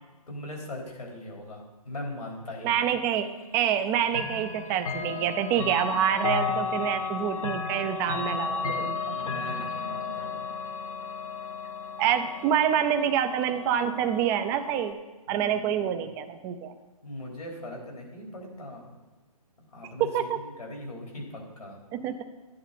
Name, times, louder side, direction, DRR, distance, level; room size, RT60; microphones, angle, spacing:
voice 1, 0.3-2.9 9.1-10.4 15.3-16.0 17.0-19.0 19.7-21.8, left 1 dB, 80° left, 0 dB, 3.6 m, -40 dB
voice 2, 2.6-3.3 3.5-9.2 12.0-15.0 15.3-16.7 20.0-20.4 21.9-22.2, right 9 dB, 15° right, 8 dB, 0.4 m, -27 dB
Chime / Clock, 4.1-14.9, left 5 dB, 60° left, 1.1 m, -34 dB
12.0 x 9.5 x 4.0 m, 1.3 s
figure-of-eight pair, 140°, 19 cm